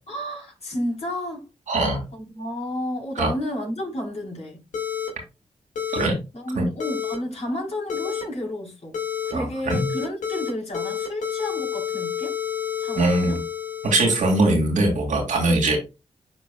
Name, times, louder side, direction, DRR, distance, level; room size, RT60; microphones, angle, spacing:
voice 1, 0.1-1.5 2.1-4.6 6.3-9.0 9.2-12.4 12.8-13.4 15.5-15.8, left 1 dB, 55° left, 3.6 m, -31 dB
voice 2, 1.7-2.0 3.2-3.3 5.9-6.1 6.6-6.7 9.3-9.8 13.0-13.4 13.8-15.8, right 2 dB, 85° right, 2.4 m, -21 dB
sound 1, 4.7-5.1 5.7-6.0 6.8-7.1 7.9-8.2 8.9-9.3 9.7-10.5 10.7-14.5, left 8 dB, 90° left, 2.1 m, -29 dB
11.0 x 4.2 x 2.2 m
cardioid pair, 50°, 13 cm